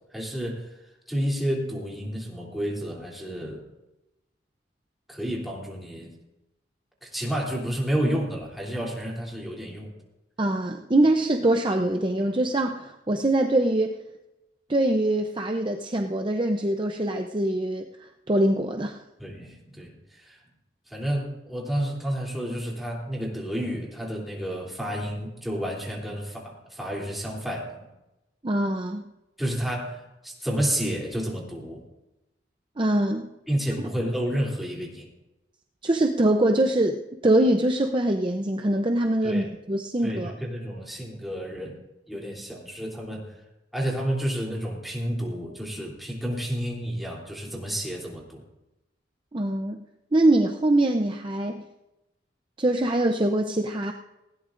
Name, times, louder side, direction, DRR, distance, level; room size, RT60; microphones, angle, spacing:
voice 1, 0.1-0.7 1.1-3.6 5.1-6.1 7.0-9.9 19.2-20.4 20.9-27.9 29.4-31.8 33.5-35.1 39.2-39.5 40.0-41.8 42.1-43.4 43.7-48.4, equal, ahead, -4 dB, 3.2 m, -30 dB
voice 2, 10.4-14.0 14.7-19.0 28.4-29.0 32.8-33.3 35.8-40.3 49.3-49.8 50.1-51.6 52.6-53.9, right 1 dB, 25° right, 3 dB, 0.6 m, -23 dB
19.0 x 17.0 x 2.6 m, 0.97 s
head